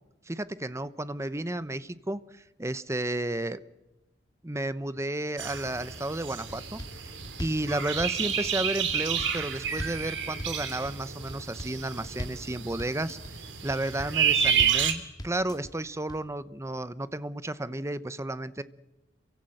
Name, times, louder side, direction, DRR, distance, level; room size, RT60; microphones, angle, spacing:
voice 1, 0.3-2.2 2.6-3.6 4.4-6.8 7.4-13.2 13.6-18.6, right 1 dB, 15° right, 14 dB, 0.9 m, -32 dB
sound 1, 5.4-14.9, right 7 dB, 85° right, 3.1 m, -30 dB
sound 2, 6.5-7.0 7.2-7.7 8.0-8.5 8.9-9.4 9.6-10.1 10.4-10.9 11.3-11.8 12.0-12.5 12.8-13.3 13.7-14.2 14.4-14.9 15.2-15.7 16.1-16.2, equal, 20° left, 2.6 m, -39 dB
28.0 x 24.5 x 7.9 m, 0.98 s
head